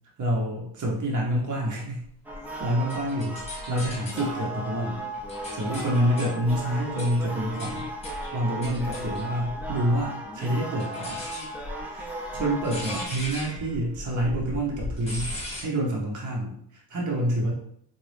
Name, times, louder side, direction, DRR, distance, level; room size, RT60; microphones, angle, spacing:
voice 1, 0.2-2.0 2.6-3.4 3.7-5.0 5.5-7.9 8.3-11.2 11.8-15.3 15.6-17.5, right 1 dB, 45° right, -2 dB, 0.8 m, -27 dB
sound 1, 2.2-13.1, right 1 dB, 5° right, 0.5 m, -36 dB
sound 2, 2.3-4.4 4.9-10.0 10.8-15.6, left 2 dB, 15° left, 1.1 m, -38 dB
4.0 x 2.3 x 3.2 m, 0.67 s
wide cardioid pair, 125°, 44 cm